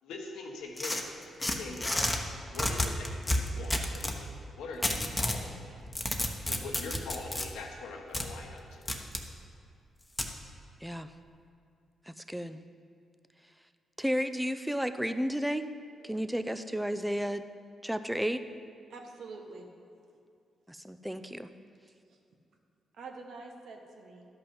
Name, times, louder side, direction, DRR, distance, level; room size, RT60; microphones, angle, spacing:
voice 1, 0.0-1.1 1.4-2.1 2.5-5.8 6.5-8.9, left 3 dB, 85° left, 1 dB, 1.2 m, -43 dB
sound 1, 0.8-2.2 2.5-4.2 4.8-5.4 5.8-7.5 8.1-8.3 8.9-9.2 10.2-10.3, left 1 dB, 15° left, 1.1 m, -30 dB
voice 2, 10.8-11.1 12.1-12.6 14.0-15.7 16.0-17.5 17.8-18.4 20.7-21.5, equal, 5° right, 10 dB, 0.5 m, -32 dB
voice 3, 18.9-19.7 22.1-22.2 23.0-24.3, right 3 dB, 75° right, 3 dB, 1.2 m, -46 dB
12.0 x 5.5 x 5.5 m, 2.5 s
cardioid pair, 65°, 0 cm